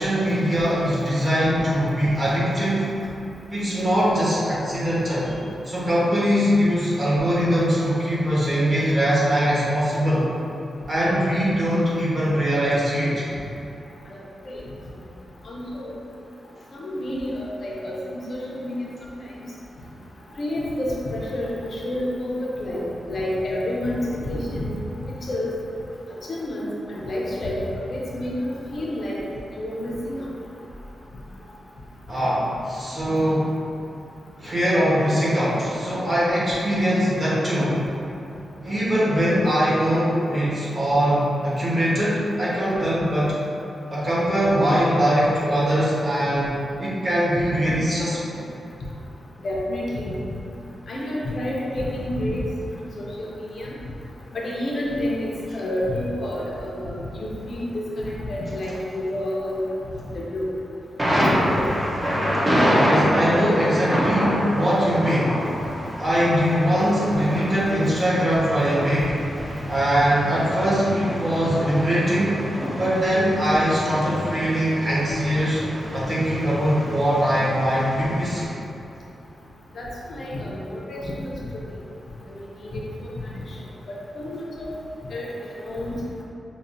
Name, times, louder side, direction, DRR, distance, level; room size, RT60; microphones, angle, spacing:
voice 1, 0.0-2.9 3.5-5.3 5.7-10.3 10.9-13.3 32.1-33.5 34.4-37.8 38.6-43.3 43.9-46.5 46.8-48.4 62.8-65.4 66.0-69.2 69.7-72.4 72.8-75.6 75.9-78.5, equal, 30° right, -8 dB, 1.0 m, -22 dB
voice 2, 14.1-14.6 15.5-15.9 16.7-18.7 20.4-22.3 22.6-24.7 25.3-25.5 26.3-29.2 29.6-30.3 49.4-50.1 50.9-52.4 52.8-53.7 54.3-55.3 55.5-59.6 60.1-60.5 61.4-61.7 79.8-81.3 82.3-82.4 82.7-82.8 83.9-84.7 85.1-85.3 85.6-86.0, left 1 dB, 50° left, -5 dB, 0.6 m, -29 dB
Thunder, 61.0-78.5, equal, 15° right, 0.5 m, -26 dB
5.5 x 2.3 x 2.6 m, 2.7 s
wide cardioid pair, 160°, 0 cm